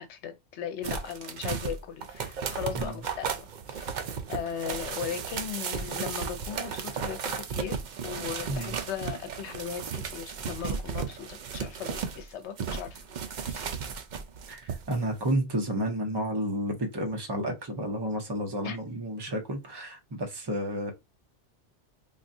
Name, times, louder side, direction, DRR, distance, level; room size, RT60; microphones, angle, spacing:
voice 1, 0.0-3.9 4.3-13.7 18.6-18.8, left 8 dB, 75° left, 0.9 m, -38 dB
sound 1, 0.8-12.2 12.6-15.0 15.3-15.4, right 6 dB, 55° right, 0.5 m, -35 dB
voice 2, 14.5-20.9, right 1 dB, 25° right, 0.7 m, -31 dB
3.9 x 2.3 x 2.6 m
omnidirectional pair, 1.2 m